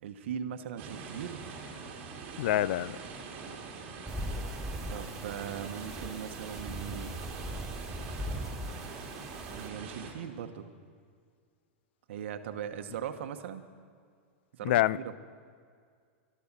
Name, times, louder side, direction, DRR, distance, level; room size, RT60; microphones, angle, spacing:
voice 1, 0.0-1.4 4.9-7.2 9.5-10.7 12.1-13.6 14.5-15.2, right 8 dB, 65° right, 9 dB, 1.1 m, -39 dB
sound 1, 0.8-10.1, right 5 dB, 30° right, 2.4 m, -44 dB
voice 2, 2.4-3.0 14.6-15.2, left 14 dB, 55° left, 20 dB, 0.3 m, -27 dB
sound 2, 4.1-9.7, equal, 5° right, 0.5 m, -40 dB
13.0 x 12.0 x 7.4 m, 2.1 s
supercardioid pair, 160°, 7 cm